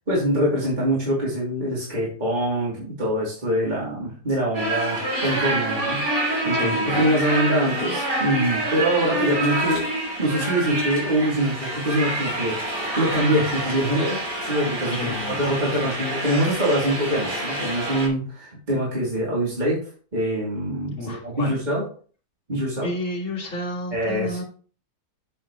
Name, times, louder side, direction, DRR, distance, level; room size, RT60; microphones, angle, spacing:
voice 1, 0.1-9.9 10.2-19.8 20.1-21.8 22.5-22.9 23.9-24.4, right 1 dB, 25° right, -6 dB, 3.0 m, -24 dB
sound 1, 4.5-18.1, right 1 dB, 80° right, 3.6 m, -27 dB
voice 2, 6.5-7.0 14.9-15.4 21.0-21.6 22.8-24.4, left 1 dB, 45° left, -1 dB, 2.4 m, -31 dB
8.5 x 7.4 x 3.0 m, 0.42 s
omnidirectional pair, 1.8 m